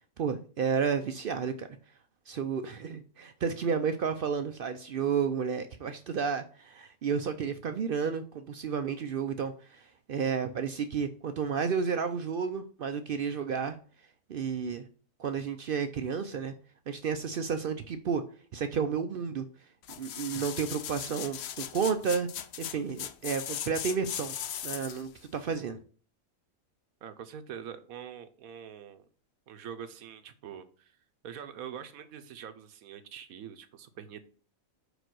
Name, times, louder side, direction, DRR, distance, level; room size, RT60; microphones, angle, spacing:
voice 1, 0.2-1.7 2.3-13.8 14.3-14.8 15.2-16.5 16.9-18.2 18.5-19.5 20.0-22.3 22.6-24.3 24.6-25.8, right 6 dB, 65° right, 8 dB, 0.5 m, -31 dB
sound 1, 19.8-25.1 25.5-25.6, left 10 dB, 65° left, 0.7 m, -38 dB
voice 2, 27.0-29.0 29.5-30.9 31.2-34.2, right 8 dB, 80° right, 10 dB, 1.2 m, -44 dB
5.0 x 5.0 x 6.1 m, 0.42 s
omnidirectional pair, 1.5 m